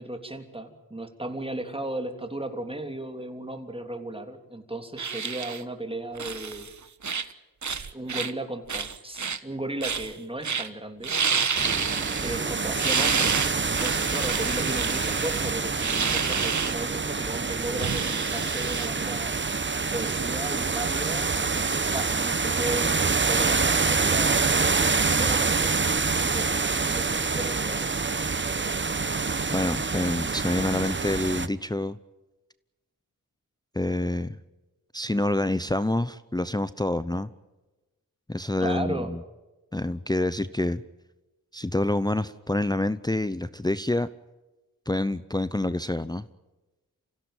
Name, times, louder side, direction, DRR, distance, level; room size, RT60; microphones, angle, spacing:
voice 1, 0.0-6.7 7.9-11.1 12.2-19.3 19.9-24.8 25.1-25.7 26.1-26.5 26.9-27.9 38.6-39.1, right 1 dB, 15° right, 6 dB, 3.3 m, -35 dB
Stuffy nose, 5.0-5.6 6.2-6.7 7.0-7.3 7.6-8.3 8.7-9.4 9.8-10.1 10.4-10.7 11.0-12.5 12.8-16.7 17.8-18.9, right 6 dB, 55° right, 1.3 m, -29 dB
sound 1, 11.5-31.5, right 4 dB, 30° right, 1.0 m, -26 dB
voice 2, 29.5-32.0 33.7-34.4 34.9-37.3 38.3-39.2 39.7-40.8 41.5-44.1 44.9-46.3, left 1 dB, 10° left, 14 dB, 0.8 m, -27 dB
26.0 x 16.0 x 9.1 m, 1.1 s
cardioid pair, 45°, 36 cm